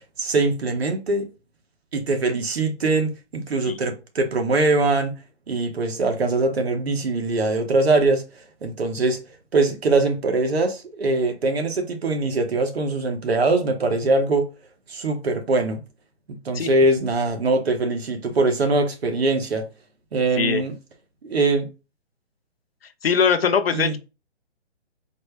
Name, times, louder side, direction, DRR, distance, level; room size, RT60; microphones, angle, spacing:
voice 1, 0.2-1.3 1.9-5.1 5.5-8.2 8.6-9.2 9.5-14.5 14.9-15.8 16.3-19.7 20.1-20.7 21.2-21.7 23.7-24.0, right 3 dB, 60° right, 1.0 m, -22 dB
voice 2, 23.0-24.0, left 6 dB, 55° left, 0.5 m, -21 dB
4.2 x 2.1 x 3.2 m
hypercardioid pair, 170°, 35 cm